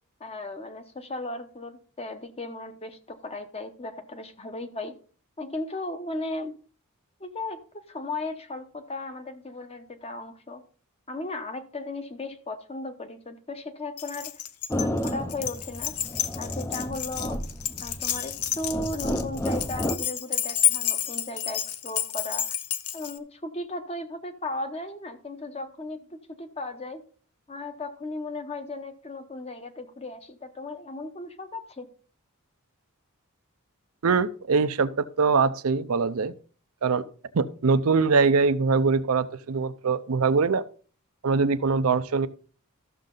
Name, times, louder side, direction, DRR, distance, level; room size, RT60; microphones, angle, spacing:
voice 1, 0.2-5.0 5.4-6.6 7.2-10.6 11.1-14.3 14.7-16.0 16.3-17.4 17.8-22.6 22.9-27.1 27.5-31.9, left 2 dB, 30° left, 0.9 m, -36 dB
Keys jangling, 14.0-23.2, left 10 dB, 85° left, 0.7 m, -30 dB
sound 1, 14.7-20.0, equal, 10° left, 0.6 m, -32 dB
voice 2, 34.0-36.3 36.8-37.0 37.3-40.7 41.2-42.3, right 4 dB, 75° right, 0.6 m, -23 dB
13.5 x 6.5 x 3.9 m
head